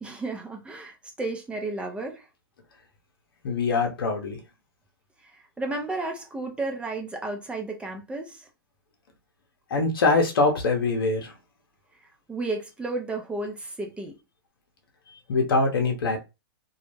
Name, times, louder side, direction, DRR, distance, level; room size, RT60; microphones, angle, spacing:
voice 1, 0.0-2.3 5.2-8.5 12.3-14.2, right 2 dB, 10° right, 0.4 m, -33 dB
voice 2, 3.4-4.4 9.7-11.3 15.3-16.2, left 3 dB, 70° left, 0.7 m, -23 dB
2.3 x 2.0 x 3.1 m
hypercardioid pair, 120°, 12 cm